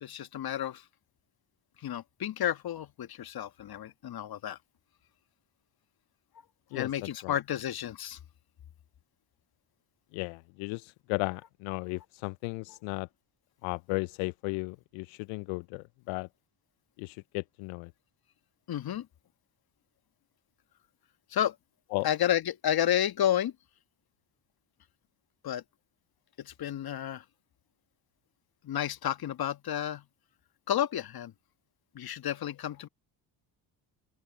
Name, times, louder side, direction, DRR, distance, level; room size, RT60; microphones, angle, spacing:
voice 1, 0.0-0.8 1.8-4.6 6.7-8.2 18.7-19.1 21.3-21.5 22.0-23.5 25.4-25.6 26.4-27.2 28.6-30.0 30.7-31.3 31.9-32.9, left 11 dB, 50° left, 1.5 m, -31 dB
voice 2, 10.1-13.1 13.6-16.3 17.0-17.9 21.9-22.1, left 27 dB, 75° left, 0.6 m, -35 dB
open air
hypercardioid pair, 60°, 48 cm